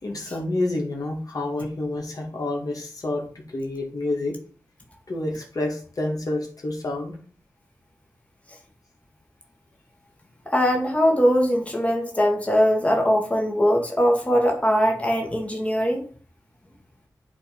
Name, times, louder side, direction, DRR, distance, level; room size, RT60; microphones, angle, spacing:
voice 1, 0.0-4.3 5.1-7.2, left 2 dB, 50° left, 0 dB, 2.1 m, -28 dB
voice 2, 10.5-16.1, equal, 15° left, 1 dB, 1.9 m, -21 dB
8.5 x 3.2 x 5.2 m, 0.43 s
cardioid pair, 45°, 8 cm